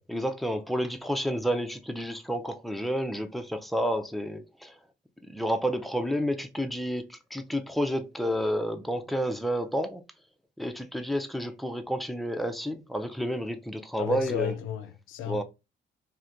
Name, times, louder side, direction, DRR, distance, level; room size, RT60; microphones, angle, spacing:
voice 1, 0.1-4.8 5.3-10.0 10.6-14.5 15.3-15.4, equal, ahead, 0.4 m, -30 dB
voice 2, 14.0-15.4, left 10 dB, 90° left, 0.5 m, -33 dB
3.2 x 2.8 x 2.5 m
cardioid pair, 90°, 20 cm